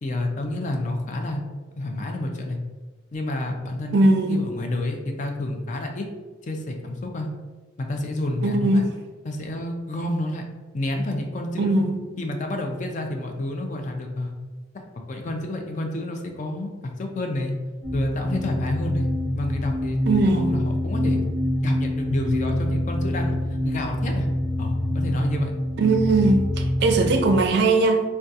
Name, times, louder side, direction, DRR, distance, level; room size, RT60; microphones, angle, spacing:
voice 1, 0.0-1.4 1.8-2.6 3.1-6.1 6.4-7.3 7.8-8.8 9.3-10.4 10.7-11.9 12.2-14.3 15.1-16.7 17.0-17.5 17.9-19.1 19.3-20.0 20.2-21.2 21.6-24.3 24.6-25.5, left 1 dB, 40° left, 3 dB, 0.4 m, -29 dB
voice 2, 3.9-4.4 8.4-8.9 11.6-12.0 20.1-20.5 25.8-28.0, right 2 dB, 60° right, 4 dB, 0.4 m, -20 dB
sound 1, 17.8-27.5, left 1 dB, 15° left, 0.7 m, -26 dB
3.5 x 2.2 x 2.7 m, 1.3 s
head